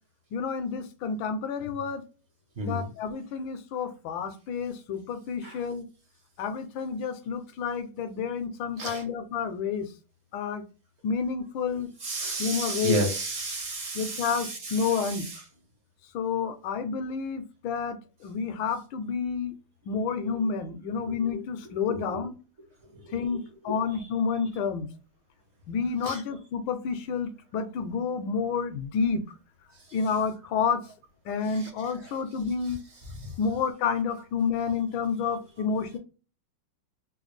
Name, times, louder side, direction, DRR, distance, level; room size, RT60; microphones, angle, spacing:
voice 1, 0.3-2.0 2.6-5.9 6.4-9.9 10.3-10.6 11.0-11.9 12.4-13.0 13.9-15.3 16.1-18.0 18.2-19.5 19.9-22.3 23.1-24.9 25.7-29.2 29.9-30.8 31.3-32.8 33.4-36.0, left 5 dB, 75° left, 9 dB, 1.2 m, -29 dB
voice 2, 2.6-2.9 5.4-5.5 8.8-9.0 12.0-15.3 21.1-21.2 21.9-22.0 23.7-23.8 26.0-26.2, right 1 dB, 50° right, 2 dB, 0.8 m, -31 dB
3.9 x 2.3 x 3.1 m, 0.34 s
omnidirectional pair, 2.4 m